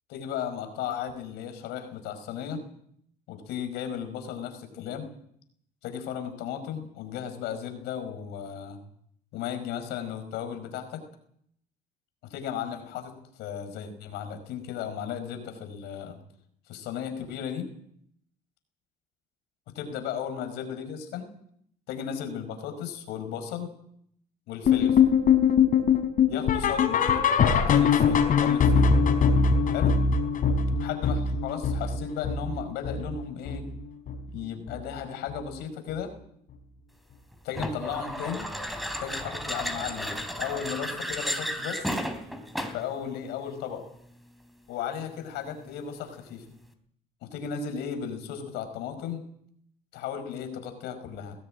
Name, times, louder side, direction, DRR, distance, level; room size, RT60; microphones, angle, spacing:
voice 1, 0.1-2.6 3.3-5.1 5.8-8.8 9.3-11.0 12.2-16.1 16.7-17.7 19.7-21.3 21.9-23.7 24.5-25.0 26.3-28.9 29.7-30.0 30.8-33.7 34.3-36.1 37.4-38.5 39.0-41.9 42.7-43.8 44.7-46.4 47.2-49.2 49.9-51.4, left 8 dB, 90° left, 8 dB, 5.1 m, -35 dB
sound 1, 24.7-33.8 34.1-34.4 34.7-34.8 35.3-35.4 35.9-36.0, left 6 dB, 55° left, 4.5 m, -22 dB
sound 2, 37.5-42.9, equal, ahead, 3.3 m, -33 dB
21.0 x 16.5 x 8.9 m, 0.70 s
cardioid pair, 110°, 17 cm